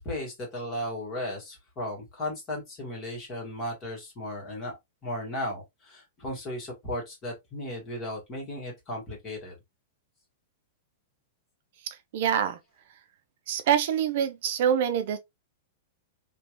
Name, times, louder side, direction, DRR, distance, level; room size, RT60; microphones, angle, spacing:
voice 1, 0.0-4.8 5.0-9.6, left 1 dB, 20° left, 1.8 m, -35 dB
voice 2, 11.8-12.6 13.5-15.2, right 9 dB, 55° right, 0.5 m, -26 dB
3.4 x 2.9 x 2.9 m
supercardioid pair, 160°, 0 cm